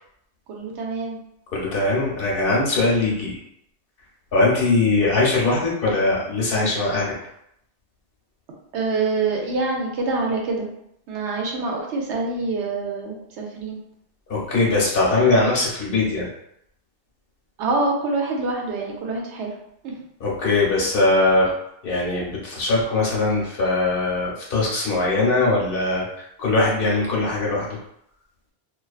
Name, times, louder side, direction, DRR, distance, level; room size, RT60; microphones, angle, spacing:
voice 1, 0.5-1.2 8.7-10.7 11.1-13.8 17.6-19.5 19.8-19.9, right 3 dB, 85° right, -1 dB, 0.9 m, -25 dB
voice 2, 1.5-3.4 4.3-7.1 14.3-16.3 20.2-21.5 21.8-26.1 26.4-27.7, left 2 dB, 60° left, -3 dB, 0.8 m, -21 dB
2.3 x 2.3 x 2.3 m, 0.75 s
omnidirectional pair, 1.2 m